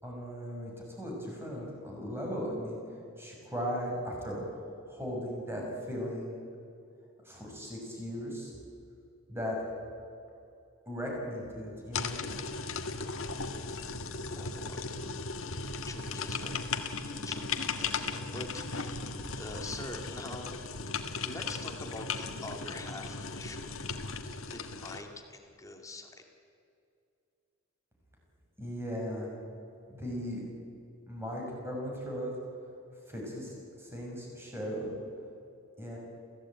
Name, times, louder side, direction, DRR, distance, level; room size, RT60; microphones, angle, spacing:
voice 1, 0.0-2.8 3.2-4.4 4.9-6.4 7.2-8.5 9.3-9.6 10.9-12.3 28.6-29.3 29.9-30.4 31.1-32.3 33.1-34.9 35.8-36.0, equal, 10° right, -2 dB, 6.4 m, -37 dB
sound 1, 11.9-25.0, left 4 dB, 65° left, 1.7 m, -37 dB
voice 2, 13.4-23.8 24.5-26.1, left 2 dB, 15° left, 3 dB, 2.3 m, -45 dB
27.5 x 16.5 x 8.9 m, 2.5 s
head